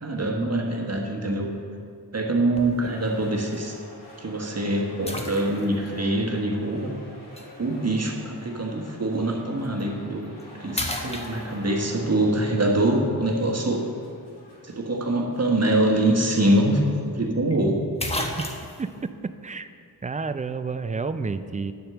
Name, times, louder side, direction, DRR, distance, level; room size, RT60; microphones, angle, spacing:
voice 1, 0.0-1.5 2.1-3.8 4.2-6.9 7.6-10.3 10.6-13.9 14.6-16.8 17.1-17.8, right 1 dB, 40° right, 0 dB, 1.4 m, -24 dB
sound 1, 2.6-2.9 3.5-3.6 5.1-5.9 7.4-7.5 9.6-9.8 10.3-10.4 10.7-11.8 15.9-16.0 16.3-16.4 17.5-17.6 18.0-18.9, left 1 dB, 15° left, 1.0 m, -32 dB
sound 2, 3.0-16.3, left 1 dB, 75° left, 2.3 m, -47 dB
voice 2, 19.2-19.7 20.0-21.7, right 4 dB, 20° right, 11 dB, 0.4 m, -30 dB
9.5 x 4.4 x 6.9 m, 2.3 s
cardioid pair, 45°, 40 cm